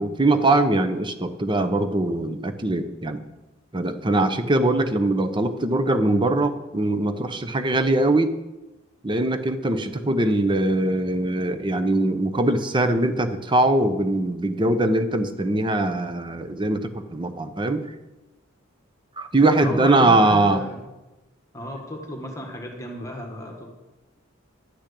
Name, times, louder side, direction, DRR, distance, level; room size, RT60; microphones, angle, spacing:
voice 1, 0.0-3.2 3.7-8.3 9.0-17.8 19.2-20.6, right 2 dB, 25° right, 9 dB, 0.8 m, -22 dB
voice 2, 19.6-20.7 21.5-23.7, left 1 dB, 15° left, 1 dB, 1.7 m, -33 dB
11.5 x 6.3 x 8.5 m, 1.0 s
head